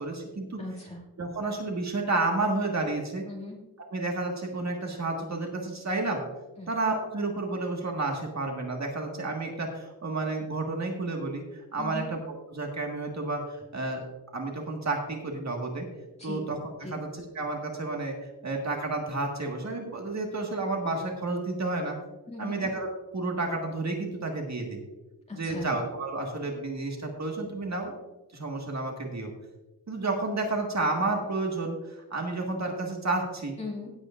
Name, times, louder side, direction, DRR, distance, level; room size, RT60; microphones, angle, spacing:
voice 1, 0.0-0.6 1.2-3.2 3.9-6.2 6.7-14.0 14.3-15.9 16.2-22.0 22.4-22.9 23.1-24.8 25.3-27.9 28.3-29.3 29.9-33.6, right 2 dB, 45° right, 1 dB, 1.7 m, -31 dB
voice 2, 0.6-1.0 3.3-3.6 6.6-6.7 11.8-12.1 16.2-16.4 16.8-17.0 22.3-22.6 25.3-25.7 33.6-33.9, left 2 dB, 15° left, -3 dB, 2.2 m, -38 dB
16.5 x 8.2 x 2.5 m, 1.1 s
wide cardioid pair, 155°, 39 cm